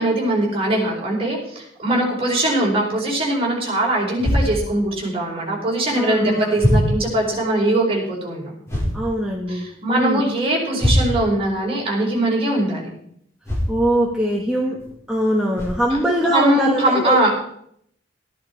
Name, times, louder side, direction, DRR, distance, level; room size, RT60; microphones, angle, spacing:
voice 1, 0.0-8.4 9.5-12.9 15.9-16.0 16.2-17.3, right 1 dB, 30° right, -3 dB, 4.6 m, -21 dB
sound 1, 4.2-4.4 5.8-5.9 6.6-6.9 8.7-9.0 10.8-11.2 13.4-13.7 14.8-14.9 15.5-15.8, equal, 15° left, 5.1 m, -20 dB
voice 2, 5.9-6.5 8.9-9.6 9.9-10.2 13.7-14.8 15.1-17.3, equal, 5° right, -3 dB, 1.4 m, -22 dB
13.5 x 11.0 x 4.5 m, 0.69 s
head